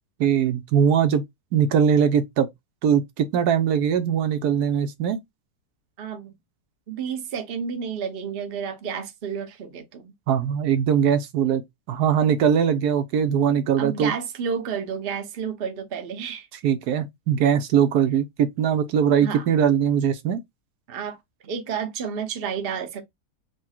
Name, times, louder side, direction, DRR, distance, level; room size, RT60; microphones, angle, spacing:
voice 1, 0.2-1.2 1.5-2.5 2.8-5.2 10.3-11.6 11.9-14.1 16.6-20.4, right 8 dB, 75° right, 1.2 m, -21 dB
voice 2, 6.0-6.3 6.9-10.1 13.8-16.5 19.2-19.4 20.9-21.2 21.4-23.0, right 7 dB, 45° right, 0.9 m, -31 dB
4.8 x 2.1 x 4.3 m
omnidirectional pair, 1.7 m